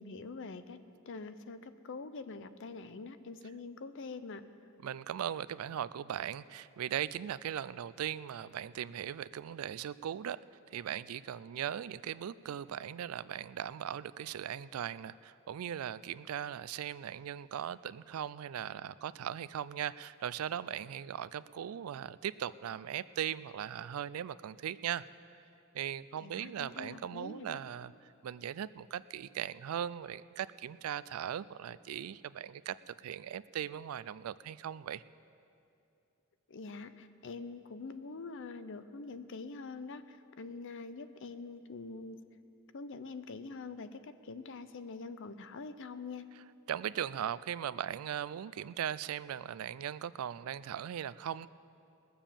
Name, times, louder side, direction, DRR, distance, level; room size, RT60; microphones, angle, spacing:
voice 1, 0.0-4.4 26.2-27.6 36.5-42.2 42.7-46.3, left 4 dB, 60° left, 12 dB, 0.6 m, -45 dB
voice 2, 4.8-10.4 10.7-25.0 25.7-27.9 28.2-35.0 46.7-51.5, right 9 dB, 85° right, 18 dB, 0.3 m, -39 dB
20.0 x 7.0 x 7.3 m, 2.6 s
head